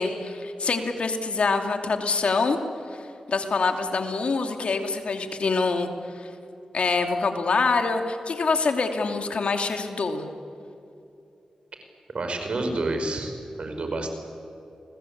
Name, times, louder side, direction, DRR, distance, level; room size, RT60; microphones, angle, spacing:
voice 1, 0.0-2.6 2.9-5.9 6.1-6.3 6.7-10.2, left 4 dB, 65° left, 5 dB, 2.7 m, -25 dB
voice 2, 12.1-13.3 13.6-14.1, right 2 dB, 60° right, 5 dB, 5.3 m, -28 dB
29.5 x 21.0 x 8.7 m, 2.8 s
cardioid pair, 60°, 2 cm